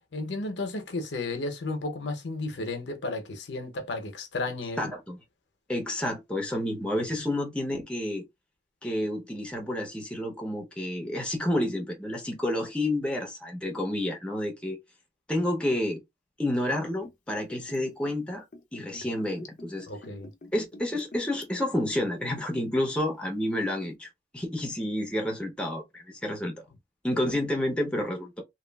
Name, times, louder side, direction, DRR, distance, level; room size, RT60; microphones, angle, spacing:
voice 1, 0.1-4.9 6.9-7.0 19.9-20.3, left 2 dB, 85° left, 0.7 m, -33 dB
voice 2, 4.8-5.2 5.7-8.2 8.8-14.8 15.3-16.0 16.4-18.4 18.7-19.9 20.5-26.6 27.0-28.4, left 1 dB, 5° left, 0.7 m, -30 dB
Liquid, 16.7-22.9 23.2-23.3, left 2 dB, 45° left, 0.5 m, -47 dB
3.0 x 2.3 x 2.2 m
head